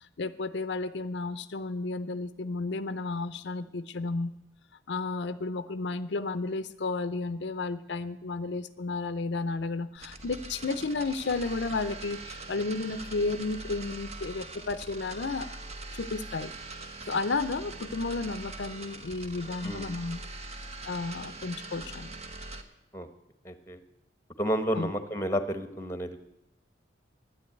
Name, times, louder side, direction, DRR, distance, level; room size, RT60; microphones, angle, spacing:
voice 1, 0.0-4.3 4.9-15.6 15.9-16.5 17.1-20.2 20.8-22.1 24.7-24.9, left 3 dB, 65° left, 12 dB, 0.5 m, -32 dB
sound 1, 9.9-22.6, right 2 dB, 35° right, 1.0 m, -42 dB
voice 2, 23.4-23.8 24.4-26.2, equal, 15° left, 10 dB, 1.0 m, -31 dB
11.5 x 9.9 x 9.1 m, 0.88 s
head